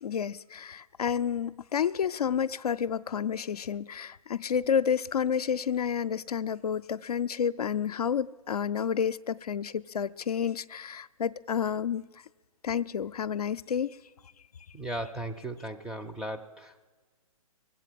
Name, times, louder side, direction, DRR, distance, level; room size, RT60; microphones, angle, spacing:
voice 1, 0.0-12.1 12.6-14.0, left 7 dB, 90° left, 0.4 m, -30 dB
voice 2, 14.7-16.9, right 1 dB, 5° right, 0.4 m, -37 dB
21.5 x 8.1 x 7.5 m
hypercardioid pair, 130°, 19 cm